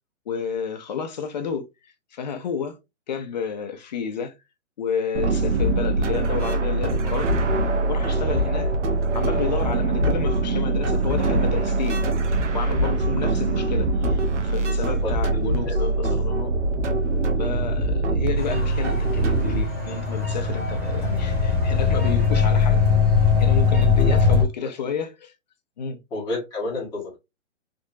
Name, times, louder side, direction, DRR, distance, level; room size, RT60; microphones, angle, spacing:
voice 1, 0.3-2.8 3.1-4.3 4.8-7.3 7.9-8.7 9.1-12.1 12.5-16.5 17.4-22.9 23.4-25.3 25.8-26.0, left 6 dB, 35° left, 0.6 m, -31 dB
sound 1, 5.1-19.6, right 2 dB, 65° right, 1.0 m, -23 dB
voice 2, 15.0-15.8 24.0-24.5 26.1-27.2, left 2 dB, 10° left, 1.3 m, -31 dB
sound 2, 18.3-24.4, equal, 5° right, 1.6 m, -37 dB
sound 3, 19.0-24.4, left 5 dB, 25° right, 0.8 m, -20 dB
3.5 x 2.9 x 2.5 m
hypercardioid pair, 160°, 39 cm